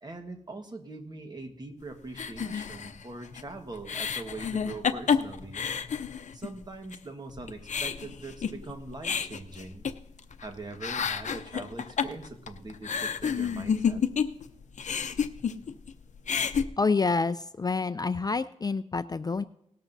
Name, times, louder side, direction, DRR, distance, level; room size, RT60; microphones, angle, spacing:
voice 1, 0.0-5.7 6.3-9.9 10.4-14.0, right 2 dB, 35° right, 5 dB, 1.4 m, -42 dB
sound 1, 2.2-6.6 6.9-7.0 7.3-10.5 10.7-14.5 14.7-15.9 16.2-16.6, left 6 dB, 70° left, 0.6 m, -30 dB
voice 2, 16.8-19.4, left 4 dB, 30° left, 12 dB, 0.3 m, -27 dB
18.0 x 13.0 x 2.7 m, 0.77 s
wide cardioid pair, 105°, 13 cm